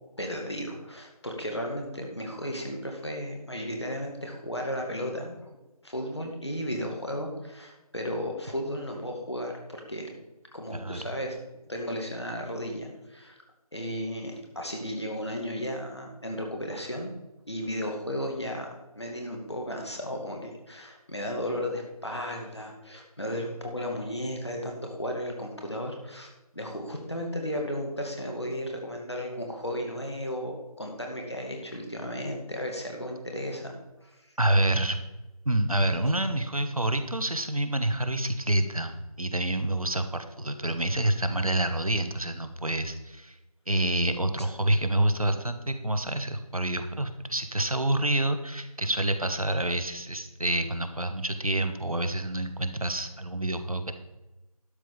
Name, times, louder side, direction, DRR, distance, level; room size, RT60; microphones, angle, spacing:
voice 1, 0.2-5.3 5.8-10.1 10.5-11.3 11.7-13.4 13.7-17.1 17.5-18.7 18.9-33.7 34.0-34.2 44.4-44.5, equal, 45° left, 1 dB, 2.2 m, -34 dB
voice 2, 34.4-35.0 35.4-43.4 43.7-53.9, right 1 dB, 65° right, 8 dB, 1.2 m, -27 dB
12.0 x 5.5 x 7.0 m, 1.0 s
figure-of-eight pair, 180°, 20 cm